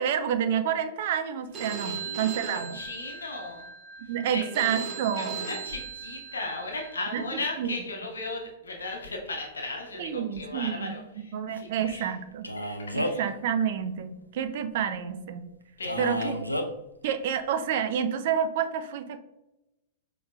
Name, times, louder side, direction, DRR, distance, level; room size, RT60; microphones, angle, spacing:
voice 1, 0.0-2.8 4.0-5.5 7.1-7.7 10.0-12.5 12.9-15.4 16.0-16.4 17.0-19.2, right 8 dB, 50° right, 9 dB, 0.4 m, -29 dB
Telephone, 1.5-7.5, right 6 dB, 25° right, 0.8 m, -39 dB
voice 2, 1.8-3.7 4.3-4.4 5.2-12.1 12.6-12.7 13.0-13.2 15.8-16.3, left 2 dB, 70° left, 1 dB, 0.8 m, -36 dB
Male speech man speaking, 12.4-13.3 15.8-16.7, left 1 dB, 90° left, 0.4 m, -30 dB
5.3 x 3.0 x 2.3 m, 0.92 s
figure-of-eight pair, 100°, 0 cm